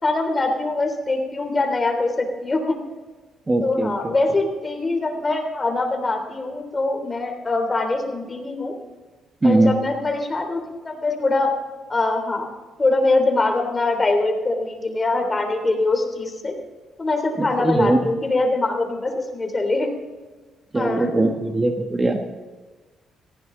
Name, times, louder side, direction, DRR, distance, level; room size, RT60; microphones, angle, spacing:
voice 1, 0.0-2.8 3.6-8.7 9.4-11.5 11.9-12.5 12.8-16.5 17.0-19.9 20.7-21.3, left 2 dB, 25° left, 5 dB, 3.4 m, -23 dB
voice 2, 3.5-4.1 9.4-9.7 17.4-18.1 20.7-22.2, right 2 dB, 20° right, 4 dB, 1.5 m, -20 dB
18.5 x 15.5 x 3.9 m, 1.3 s
cardioid pair, 90°, 0 cm